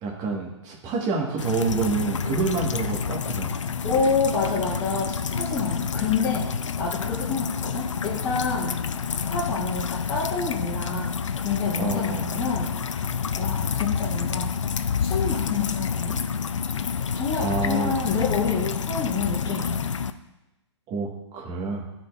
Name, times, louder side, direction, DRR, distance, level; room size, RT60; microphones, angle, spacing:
voice 1, 0.0-3.6 11.8-12.2 17.4-18.0 20.9-21.1 21.3-21.8, right 4 dB, 25° right, -2 dB, 1.5 m, -27 dB
sound 1, 1.4-20.1, left 6 dB, 90° left, 0.4 m, -28 dB
voice 2, 3.8-8.8 9.3-13.0 13.4-14.5 15.0-16.3 17.1-19.8, left 4 dB, 20° left, -11 dB, 1.6 m, -28 dB
12.5 x 4.3 x 2.5 m, 1.0 s
hypercardioid pair, 140°, 15 cm